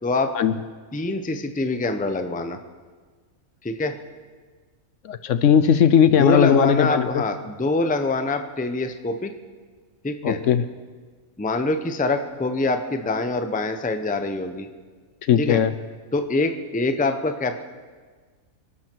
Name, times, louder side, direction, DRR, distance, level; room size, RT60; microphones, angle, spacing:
voice 1, 0.0-0.3 0.9-2.6 3.6-3.9 6.2-9.3 10.0-10.4 11.4-14.7 15.4-15.6 16.1-17.6, left 2 dB, 10° left, 7 dB, 0.6 m, -24 dB
voice 2, 5.0-7.2 10.2-10.6 15.2-15.7, left 8 dB, 65° left, 12 dB, 0.9 m, -18 dB
26.0 x 12.0 x 4.6 m, 1.5 s
omnidirectional pair, 1.5 m